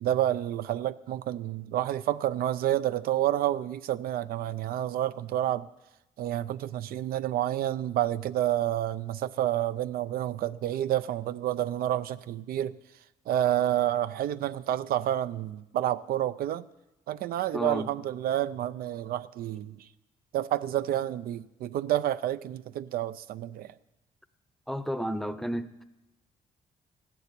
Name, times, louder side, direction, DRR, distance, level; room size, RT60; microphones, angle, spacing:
voice 1, 0.0-5.7 6.2-12.8 13.3-16.6 17.1-19.9 20.3-23.7, right 12 dB, 75° right, 0.5 m, -29 dB
voice 2, 17.5-17.9 24.7-25.8, equal, ahead, 0.7 m, -32 dB
14.5 x 7.0 x 9.6 m
cardioid pair, 105°, 15 cm